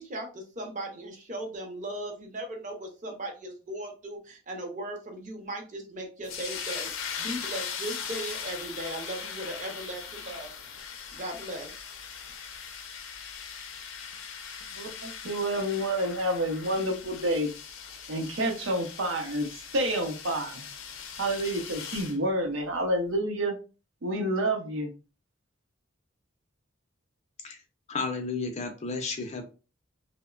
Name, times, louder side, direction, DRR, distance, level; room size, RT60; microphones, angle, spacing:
voice 1, 0.0-10.5 11.1-11.7, right 1 dB, 40° right, 2 dB, 0.7 m, -38 dB
sound 1, 6.2-22.2, left 6 dB, 90° left, 0.5 m, -40 dB
voice 2, 14.8-17.5 18.1-19.5 19.7-20.6 21.2-23.6 24.0-24.9, right 1 dB, 80° right, 3 dB, 0.7 m, -29 dB
voice 3, 27.9-29.4, left 4 dB, 35° left, 5 dB, 0.5 m, -32 dB
2.9 x 2.1 x 2.3 m, 0.33 s
head